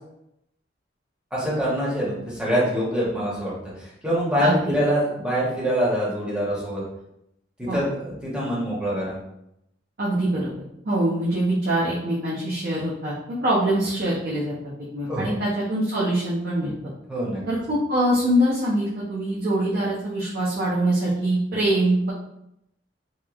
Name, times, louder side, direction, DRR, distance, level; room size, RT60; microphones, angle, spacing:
voice 1, 1.3-6.8 7.6-9.2 15.1-15.3 17.1-17.4, equal, 5° right, -7 dB, 0.8 m, -25 dB
voice 2, 4.4-4.8 7.7-7.8 10.0-10.5 10.8-14.5 14.9-16.7 17.5-22.1, right 1 dB, 55° right, -8 dB, 0.6 m, -23 dB
2.9 x 2.0 x 2.3 m, 0.80 s
head